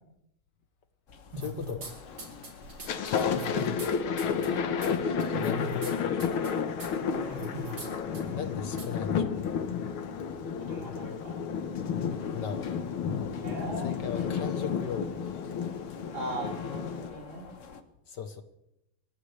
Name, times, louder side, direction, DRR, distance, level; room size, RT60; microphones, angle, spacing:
sound 1, 1.1-17.8, left 5 dB, 45° left, 1.2 m, -47 dB
sound 2, 1.3-1.9 2.2-3.9 4.2-4.5 4.8-4.9 5.2-5.9 6.2-6.5 6.8-6.9 7.3-7.9 8.1-8.2 8.8-8.9, right 2 dB, 50° right, 3.8 m, -39 dB
voice 1, 1.4-1.9 5.3-6.3 8.3-9.3 12.3-12.8 13.8-15.1 18.1-18.4, left 7 dB, 60° left, 9 dB, 1.5 m, -37 dB
Thunder, 1.9-2.3 2.7-17.1, left 6 dB, 85° left, 2.0 m, -31 dB
voice 2, 4.4-5.6 7.1-7.6 10.6-11.4 13.4-13.9 16.1-17.4, right 1 dB, 65° right, -2 dB, 5.3 m, -40 dB
28.0 x 15.0 x 3.3 m, 0.85 s
omnidirectional pair, 2.2 m